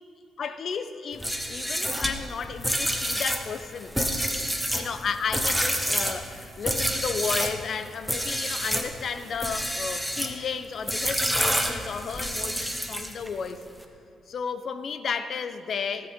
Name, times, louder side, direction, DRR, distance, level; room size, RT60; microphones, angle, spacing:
voice 1, 0.4-4.0 4.7-13.6 14.3-16.1, left 6 dB, 55° left, 10 dB, 0.7 m, -33 dB
sound 1, 1.1-7.6 8.0-8.9 9.3-10.4 10.9-13.3, equal, ahead, 1.2 m, -28 dB
17.0 x 9.0 x 3.7 m, 3.0 s
cardioid pair, 85°, 0 cm